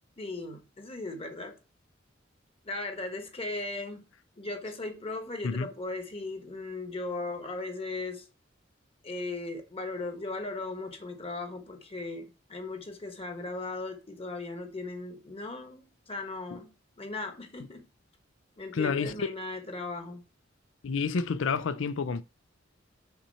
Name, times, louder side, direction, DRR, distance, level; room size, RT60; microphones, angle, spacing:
voice 1, 0.2-1.5 2.6-4.0 4.4-8.2 9.0-17.8 18.6-20.2, left 2 dB, 30° left, 1.3 m, -37 dB
voice 2, 18.7-19.3 20.8-22.2, left 5 dB, 75° left, 0.5 m, -29 dB
5.9 x 4.2 x 5.6 m
head